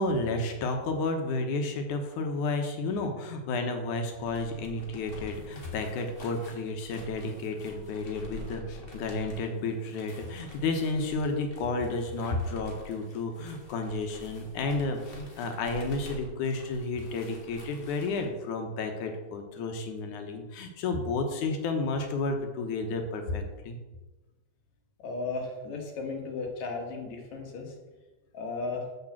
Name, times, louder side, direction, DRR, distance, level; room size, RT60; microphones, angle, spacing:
voice 1, 0.0-23.8, left 3 dB, 85° left, 4 dB, 2.6 m, -31 dB
sound 1, 4.1-18.3, left 1 dB, 25° left, 1.4 m, -49 dB
voice 2, 25.0-27.7 28.3-28.9, left 3 dB, 70° left, 2 dB, 2.9 m, -35 dB
7.2 x 6.6 x 7.2 m, 1.1 s
omnidirectional pair, 3.4 m